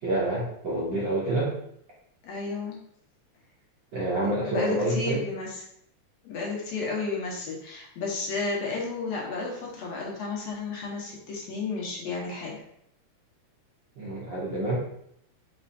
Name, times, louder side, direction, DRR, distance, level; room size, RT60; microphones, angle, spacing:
voice 1, 0.0-1.5 3.9-5.2 14.0-14.7, right 2 dB, 65° right, -7 dB, 1.1 m, -27 dB
voice 2, 2.2-2.8 4.5-5.6 6.2-12.6, left 3 dB, 70° left, -3 dB, 2.0 m, -32 dB
4.3 x 4.2 x 2.6 m, 0.71 s
omnidirectional pair, 3.4 m